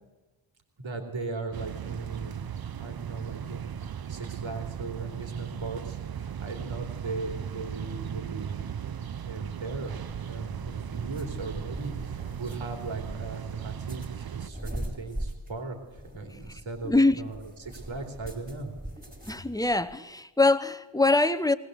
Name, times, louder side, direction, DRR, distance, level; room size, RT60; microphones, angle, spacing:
voice 1, 0.8-2.4 2.7-3.7 4.1-8.6 9.2-10.0 10.3-18.7, right 3 dB, 65° right, 3.4 m, -38 dB
sound 1, 1.5-14.5, right 8 dB, 45° right, 0.7 m, -37 dB
sound 2, 9.8-19.9, right 1 dB, 15° right, 3.2 m, -42 dB
voice 2, 16.8-17.2 19.3-21.5, left 2 dB, 10° left, 0.7 m, -23 dB
20.0 x 19.0 x 8.0 m
wide cardioid pair, 150°, 50 cm